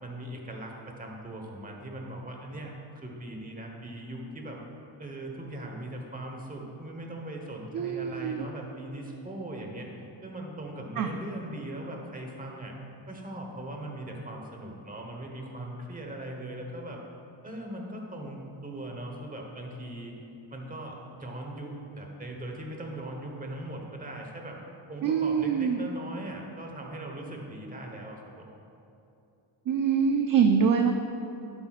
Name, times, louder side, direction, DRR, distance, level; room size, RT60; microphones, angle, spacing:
voice 1, 0.0-4.6 5.0-9.9 10.2-12.7 13.1-17.0 17.4-20.1 20.5-24.6 24.9-28.5, right 1 dB, 15° right, 1 dB, 1.1 m, -40 dB
voice 2, 7.7-8.5 11.0-11.1 25.0-25.8 29.7-30.9, right 6 dB, 45° right, 4 dB, 0.5 m, -24 dB
11.5 x 8.8 x 2.4 m, 2.7 s
cardioid pair, 135°, 48 cm